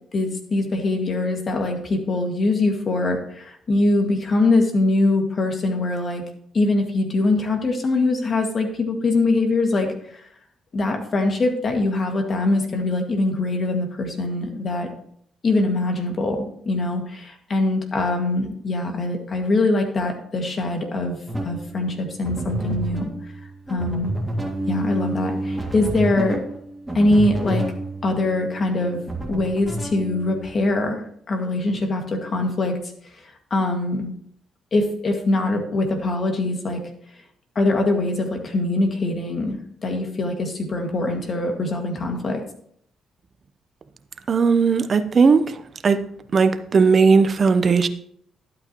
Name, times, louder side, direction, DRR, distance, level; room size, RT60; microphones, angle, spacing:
voice 1, 0.1-6.2 6.5-10.3 10.7-14.9 15.4-21.2 21.4-23.1 23.7-24.1 24.7-26.4 26.9-27.6 28.0-29.0 29.3-32.8 33.2-34.1 34.7-36.8 37.6-42.4, left 2 dB, 45° left, 3 dB, 2.0 m, -23 dB
sound 1, 21.3-30.8, right 1 dB, 10° right, 1.9 m, -30 dB
voice 2, 44.3-46.0 46.3-47.9, right 5 dB, 45° right, 11 dB, 0.8 m, -17 dB
12.0 x 8.6 x 3.1 m, 0.65 s
cardioid pair, 90°, 0 cm